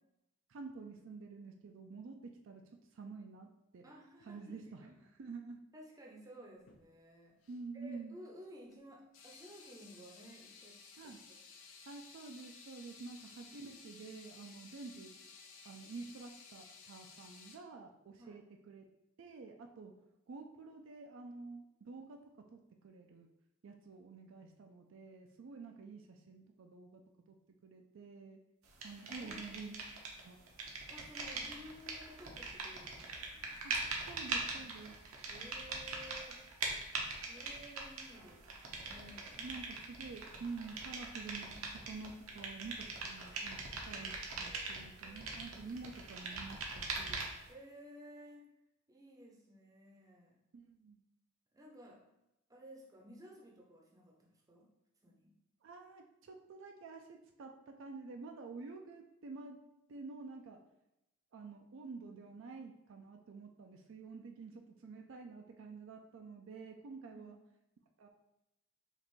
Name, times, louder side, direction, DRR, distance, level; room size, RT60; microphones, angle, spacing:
voice 1, 0.5-2.6 2.9-3.8 4.3-5.6 7.5-8.2 11.0-11.2 11.9-15.1 15.6-18.8 19.2-19.9 20.3-23.3 23.6-27.0 27.3-27.4 27.6-28.4 28.8-29.8 30.2-30.4 33.6-33.7 34.1-35.0 39.4-43.6 43.8-47.3 50.5-51.0 55.6-59.6 59.9-60.6 61.3-67.3 68.0-68.1, right 4 dB, 60° right, 3 dB, 0.4 m, -49 dB
voice 2, 3.8-5.1 5.7-7.3 7.7-11.2 11.6-11.8 18.2-18.4 29.1-29.5 30.9-33.6 34.5-35.0 35.3-36.4 37.3-39.5 47.5-48.5 48.9-50.4 51.5-52.0 52.5-54.7 55.0-55.3 67.1-67.3, equal, 15° right, -2 dB, 0.6 m, -55 dB
sound 1, 6.6-6.9 7.4-7.6 8.7-8.8 9.1-17.6, left 5 dB, 65° left, 0.5 m, -56 dB
sound 2, 28.8-30.2 30.5-47.5, right 3 dB, 75° right, 0.8 m, -42 dB
5.2 x 2.5 x 3.1 m, 0.89 s
head